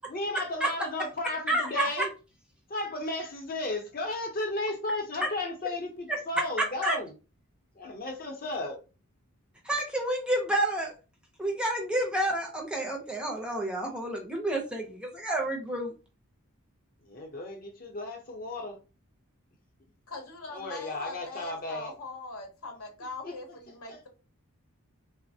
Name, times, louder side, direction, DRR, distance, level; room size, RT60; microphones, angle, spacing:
voice 1, 0.1-2.1 2.7-7.1 7.7-8.8 17.0-18.8 20.5-21.9 23.2-23.6 23.9-24.1, left 2 dB, 40° left, 0.7 m, -34 dB
voice 2, 1.5-2.0 6.8-7.0 9.6-10.9 11.4-15.9, right 1 dB, 5° right, 0.5 m, -29 dB
voice 3, 20.1-24.1, left 3 dB, 75° left, 0.8 m, -41 dB
3.1 x 2.0 x 2.6 m
head